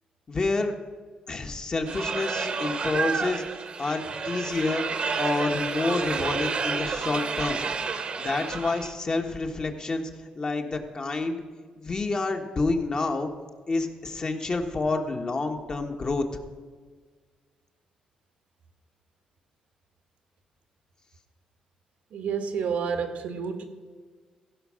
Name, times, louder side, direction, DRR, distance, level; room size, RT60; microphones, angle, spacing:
voice 1, 0.3-0.7 1.3-3.4 3.8-4.8 5.2-7.6 8.2-11.4 11.8-13.3 13.7-16.2, left 3 dB, 35° left, 4 dB, 1.2 m, -28 dB
sound 1, 1.9-8.9, right 5 dB, 50° right, 1.0 m, -30 dB
voice 2, 22.1-23.6, right 6 dB, 75° right, 7 dB, 1.3 m, -29 dB
15.5 x 5.4 x 6.3 m, 1.5 s
cardioid pair, 95°, 2 cm